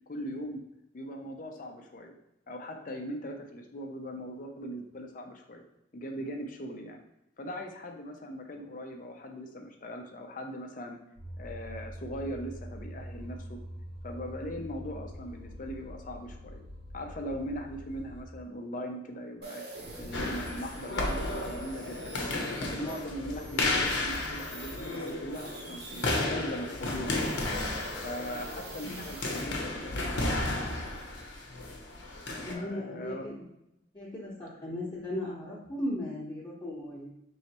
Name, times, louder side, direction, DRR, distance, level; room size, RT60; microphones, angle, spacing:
voice 1, 0.1-0.6 0.9-2.1 2.5-5.6 5.9-7.0 7.4-11.0 11.4-13.6 14.0-16.6 16.9-19.6 20.0-22.2 22.5-27.3 28.0-31.0 32.5-33.4, equal, 45° left, 3 dB, 0.5 m, -40 dB
sound 1, 11.2-18.2, equal, 25° right, 0.9 m, -44 dB
sound 2, 19.4-26.2 26.7-29.4, right 2 dB, 60° right, 1.0 m, -47 dB
sound 3, 20.1-32.5, left 2 dB, 85° left, 0.8 m, -33 dB
voice 2, 32.5-33.3 33.9-37.1, left 1 dB, 25° left, -8 dB, 0.9 m, -36 dB
4.2 x 3.1 x 2.9 m, 0.84 s
head